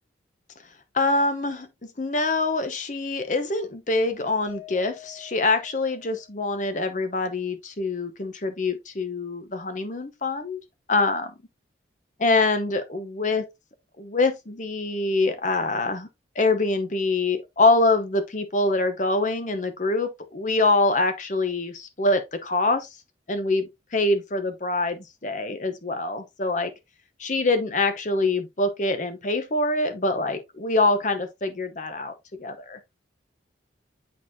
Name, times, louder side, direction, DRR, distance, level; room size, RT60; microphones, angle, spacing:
voice 1, 0.9-1.7 2.0-10.6 10.9-11.3 12.2-13.4 14.0-16.1 16.3-22.9 23.3-26.7 27.2-32.1 32.4-32.8, left 2 dB, 45° left, 0.9 m, -24 dB
Mallet percussion, 4.5-6.7, left 15 dB, 5° left, 2.4 m, -47 dB
8.6 x 4.1 x 2.7 m
head